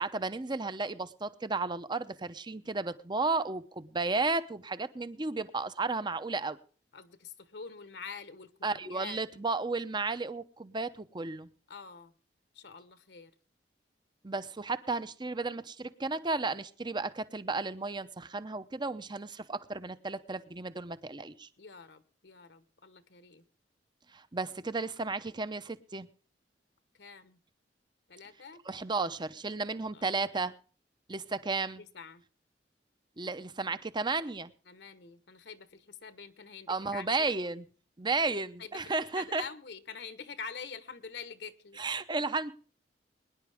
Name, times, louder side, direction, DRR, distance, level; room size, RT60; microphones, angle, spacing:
voice 1, 0.0-6.6 8.6-11.5 14.2-21.5 24.1-26.1 28.7-30.5 31.1-31.8 33.2-34.5 36.7-37.7 38.0-39.4 41.8-42.5, right 3 dB, 25° right, 14 dB, 0.8 m, -33 dB
voice 2, 6.9-9.4 11.7-12.1 12.5-13.3 21.6-23.4 26.9-27.4 28.1-28.6 29.9-30.2 31.8-32.2 34.7-37.4 38.3-38.8 39.1-41.8, left 5 dB, 65° left, 13 dB, 1.2 m, -46 dB
23.0 x 10.5 x 3.5 m, 0.40 s
head